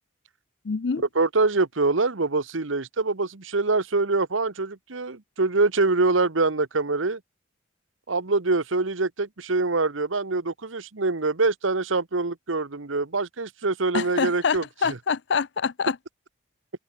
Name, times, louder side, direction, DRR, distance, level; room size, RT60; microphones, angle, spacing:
voice 1, 0.6-1.0 13.9-16.0, left 5 dB, 65° left, 0.5 m, -26 dB
voice 2, 1.1-7.2 8.1-15.0, right 3 dB, 90° right, 1.3 m, -24 dB
open air
head